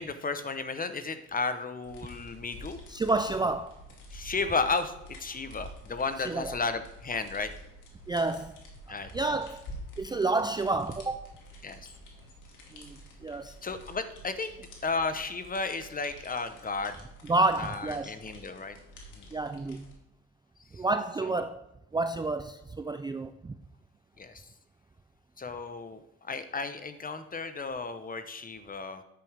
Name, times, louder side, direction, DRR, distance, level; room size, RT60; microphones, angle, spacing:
voice 1, 0.0-2.8 4.1-4.9 5.2-7.5 8.9-9.1 11.6-11.8 13.6-17.0 17.6-18.8 19.2-19.3 24.2-24.4 25.4-29.0, left 4 dB, 30° left, 1.0 m, -33 dB
sound 1, 1.8-19.9, equal, 85° left, 2.4 m, -49 dB
voice 2, 2.9-3.8 6.2-6.6 8.1-8.6 9.1-9.7 10.0-11.3 12.7-13.6 17.2-18.1 19.3-19.9 20.7-21.6 21.9-23.5, right 3 dB, 15° right, 0.4 m, -30 dB
10.5 x 8.4 x 3.5 m
cardioid pair, 90°, 30 cm